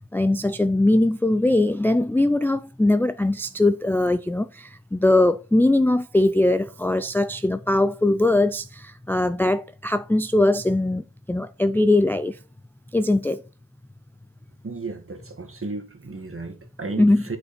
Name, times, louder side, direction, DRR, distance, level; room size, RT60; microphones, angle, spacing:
voice 1, 0.1-12.4 12.9-13.4 17.0-17.3, left 2 dB, 5° left, 0.4 m, -21 dB
voice 2, 14.6-17.4, right 3 dB, 40° right, 2.0 m, -34 dB
8.4 x 6.3 x 4.3 m
wide cardioid pair, 100°, 35 cm